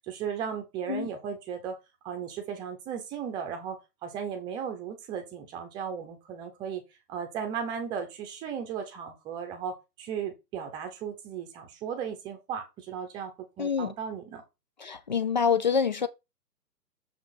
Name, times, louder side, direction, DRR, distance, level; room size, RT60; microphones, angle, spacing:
voice 1, 0.1-1.8 2.0-6.8 7.1-14.4, right 7 dB, 10° right, 0.9 m, -36 dB
voice 2, 13.6-13.9 14.8-16.1, left 6 dB, 30° left, 0.5 m, -26 dB
7.2 x 4.7 x 4.1 m
hypercardioid pair, 150°, 49 cm